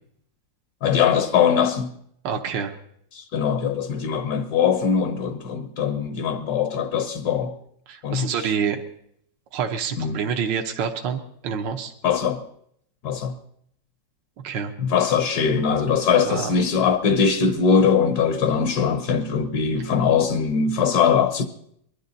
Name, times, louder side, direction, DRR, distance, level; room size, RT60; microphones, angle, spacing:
voice 1, 0.8-2.0 3.1-7.5 8.0-8.5 10.0-10.2 12.0-12.4 13.0-13.4 14.8-21.4, left 6 dB, 65° left, 1.3 m, -21 dB
voice 2, 2.2-2.7 7.9-8.8 9.5-11.9 14.4-14.7 16.2-16.5, right 7 dB, 75° right, 1.6 m, -27 dB
23.0 x 11.5 x 4.0 m
omnidirectional pair, 2.0 m